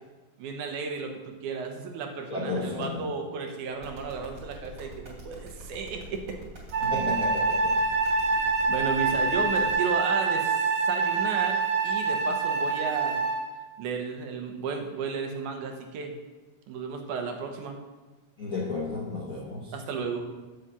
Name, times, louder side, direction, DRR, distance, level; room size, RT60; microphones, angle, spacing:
voice 1, 0.4-6.0 8.7-11.6 11.8-13.2 13.8-16.1 16.7-17.8 19.7-20.3, right 5 dB, 85° right, 3 dB, 2.5 m, -33 dB
voice 2, 2.3-3.1 6.8-7.7 18.4-19.7, left 3 dB, 60° left, -4 dB, 0.8 m, -33 dB
sound 1, 3.8-9.7, right 1 dB, 35° right, 3.5 m, -45 dB
Wind instrument woodwind instrument, 6.7-13.5, right 4 dB, 50° right, 1.8 m, -26 dB
8.2 x 4.9 x 7.3 m, 1.2 s
omnidirectional pair, 3.4 m